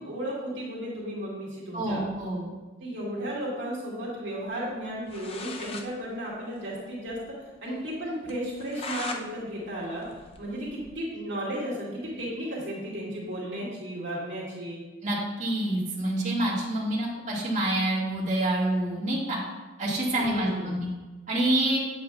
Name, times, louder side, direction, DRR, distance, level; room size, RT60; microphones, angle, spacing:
voice 1, 0.0-2.0 2.8-7.2 7.6-10.1 10.4-14.8 20.2-20.7, equal, 65° right, -7 dB, 2.2 m, -34 dB
voice 2, 1.7-2.5 15.0-19.4 19.8-20.9 21.3-21.8, right 1 dB, 40° right, -7 dB, 1.8 m, -27 dB
sound 1, 4.8-4.9 5.1-5.9 6.2-6.3 6.6-6.7 7.1-7.2 7.6-7.7 8.3-9.2 9.6-11.0, left 3 dB, 30° left, 0.5 m, -39 dB
8.5 x 7.9 x 2.3 m, 1.2 s
head